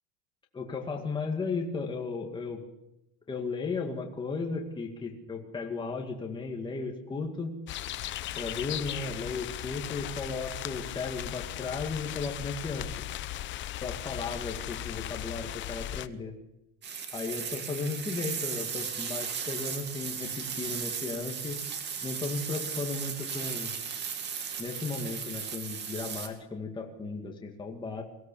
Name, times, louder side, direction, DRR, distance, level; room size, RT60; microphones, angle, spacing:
voice 1, 0.5-2.6 3.3-7.6 8.4-12.9 13.8-16.3 17.1-21.6 22.0-23.8 24.6-28.0, left 4 dB, 15° left, 1 dB, 2.2 m, -35 dB
sound 1, 7.7-16.1, left 13 dB, 30° left, 0.8 m, -37 dB
sound 2, 16.8-26.3, right 7 dB, 30° right, 2.6 m, -36 dB
23.5 x 17.0 x 7.0 m, 0.89 s
cardioid pair, 160°, 36 cm